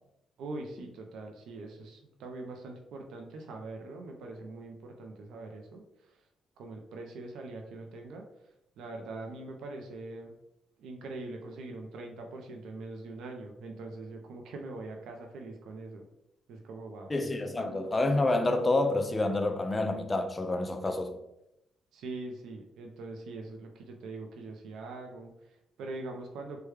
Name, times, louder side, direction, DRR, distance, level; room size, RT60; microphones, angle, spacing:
voice 1, 0.4-6.2 6.6-8.3 8.8-10.3 10.8-16.1 16.5-17.1 21.9-26.6, right 2 dB, 80° right, 0.4 m, -42 dB
voice 2, 17.1-21.2, left 2 dB, 25° left, 0.4 m, -28 dB
3.3 x 2.2 x 3.1 m
cardioid pair, 90°, 0 cm